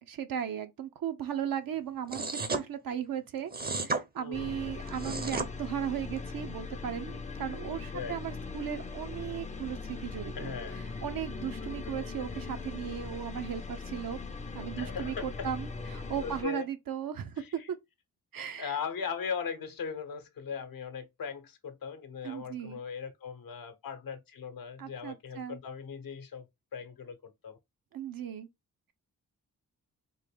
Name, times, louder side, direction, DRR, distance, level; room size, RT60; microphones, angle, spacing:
voice 1, 0.1-10.5 11.0-14.2 14.5-17.4 18.3-18.8 22.2-22.8 24.8-25.6 27.9-28.5, right 9 dB, 60° right, 0.7 m, -36 dB
sound 1, 2.1-2.6 3.5-4.0 4.9-5.5, right 3 dB, 25° right, 0.7 m, -32 dB
voice 2, 4.2-4.7 7.9-8.2 10.4-10.9 11.8-11.9 14.8-15.5 16.2-16.7 17.4-17.7 18.6-26.5 26.7-27.6, left 6 dB, 60° left, 0.9 m, -39 dB
sound 2, 4.3-16.4, left 4 dB, 20° left, 0.5 m, -40 dB
3.8 x 2.1 x 3.4 m
supercardioid pair, 50°, 38 cm